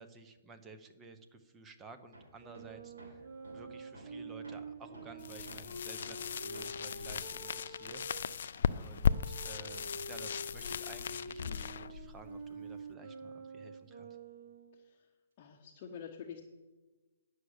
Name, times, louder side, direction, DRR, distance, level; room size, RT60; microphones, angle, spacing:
voice 1, 0.0-3.3 3.5-8.2 8.7-14.2, right 4 dB, 10° right, 8 dB, 0.8 m, -53 dB
Hammer, 2.1-9.5 9.7-11.5, right 1 dB, 90° right, 3.7 m, -56 dB
Wind instrument woodwind instrument, 2.4-8.2 9.0-14.8, right 2 dB, 65° right, 3.2 m, -47 dB
sound 1, 5.2-12.9, left 7 dB, 60° left, 0.4 m, -37 dB
voice 2, 15.4-16.4, left 7 dB, 30° left, 1 dB, 1.0 m, -47 dB
9.8 x 6.5 x 8.0 m, 1.3 s
hypercardioid pair, 160°, 0 cm